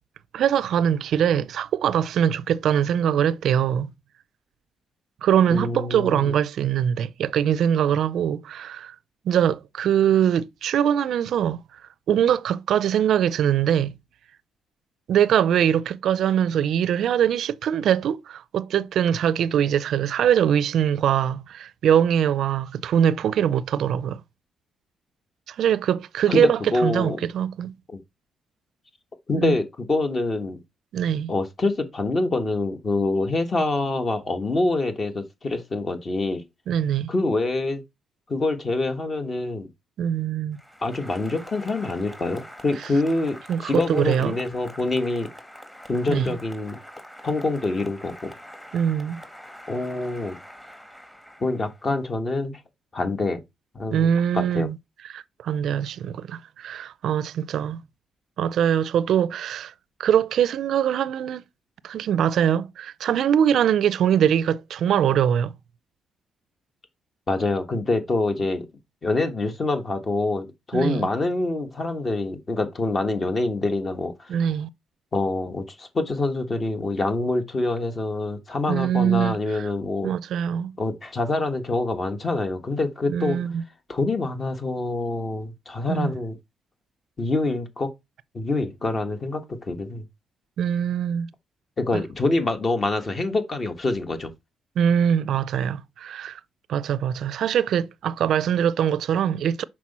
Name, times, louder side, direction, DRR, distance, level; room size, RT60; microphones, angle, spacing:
voice 1, 0.3-3.9 5.2-8.9 9.3-11.6 12.1-13.9 15.1-24.2 25.5-27.7 29.4-29.5 30.9-31.3 36.7-37.1 40.0-40.6 43.5-44.4 46.1-46.4 48.7-49.2 53.9-54.8 55.1-57.8 58.4-59.7 60.0-61.4 61.8-65.5 70.7-71.1 74.3-74.7 78.7-79.7 80.0-80.7 83.1-83.6 85.9-86.1 90.6-91.3 91.9-92.0 94.8-96.4 96.7-99.6, right 9 dB, 70° right, 0.4 m, -22 dB
voice 2, 5.5-6.3 26.3-27.2 27.9-28.0 29.3-30.6 31.3-36.4 37.1-37.8 38.3-39.7 40.8-45.3 45.9-46.8 47.2-48.3 49.7-50.4 51.4-52.6 52.9-53.4 53.7-54.1 54.3-54.7 67.3-68.7 69.0-74.3 75.1-80.1 80.8-83.4 83.9-86.4 87.2-87.9 88.3-90.1 91.8-94.3, left 2 dB, 35° left, 1.4 m, -26 dB
Applause, 40.5-52.0, equal, 10° left, 1.5 m, -44 dB
6.0 x 4.5 x 4.2 m
cardioid pair, 90°, 0 cm